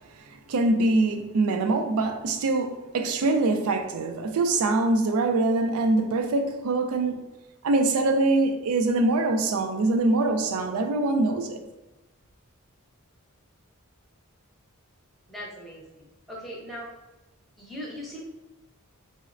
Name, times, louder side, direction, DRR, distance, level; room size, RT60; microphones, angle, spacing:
voice 1, 0.5-7.2 7.6-11.6, right 2 dB, 70° right, 0.4 m, -24 dB
voice 2, 15.3-16.9 17.6-18.2, equal, ahead, 0.7 m, -39 dB
4.0 x 2.0 x 2.4 m
head